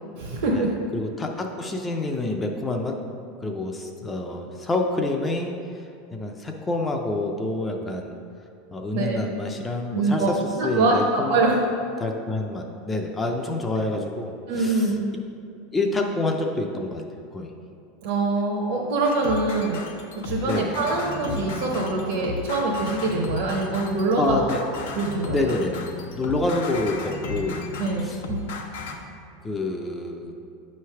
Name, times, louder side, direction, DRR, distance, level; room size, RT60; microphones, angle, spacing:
voice 1, 0.2-0.7 8.9-9.2 9.9-10.3 10.6-11.5 14.5-15.1 18.0-19.8 20.1-25.5 27.8-28.5, right 3 dB, 55° right, -4 dB, 0.8 m, -24 dB
voice 2, 0.9-3.0 3.4-5.5 6.1-8.1 8.7-11.4 12.0-14.9 15.7-17.0 17.3-17.5 20.4-20.8 24.2-24.9 25.3-25.8 26.1-27.7 28.0-28.2 29.4-30.3, left 2 dB, 10° left, 2 dB, 0.4 m, -27 dB
sound 1, 19.0-28.9, left 3 dB, 80° left, 0.8 m, -34 dB
8.3 x 3.2 x 5.7 m, 2.5 s
supercardioid pair, 175°, 0 cm